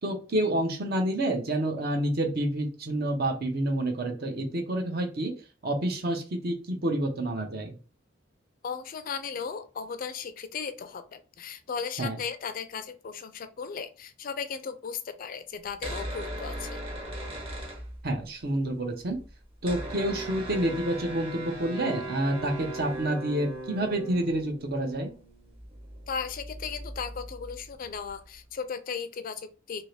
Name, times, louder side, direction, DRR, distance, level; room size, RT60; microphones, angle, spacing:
voice 1, 0.0-5.3 5.6-7.8 12.0-12.2 18.0-19.2 19.6-25.1, right 1 dB, 55° right, 4 dB, 0.7 m, -28 dB
voice 2, 8.6-16.8 26.1-29.8, left 6 dB, 45° left, 10 dB, 0.4 m, -36 dB
sound 1, 15.7-18.4 18.7-18.8 18.9-28.4, right 1 dB, 30° right, 0.9 m, -39 dB
2.8 x 2.7 x 3.1 m, 0.35 s
head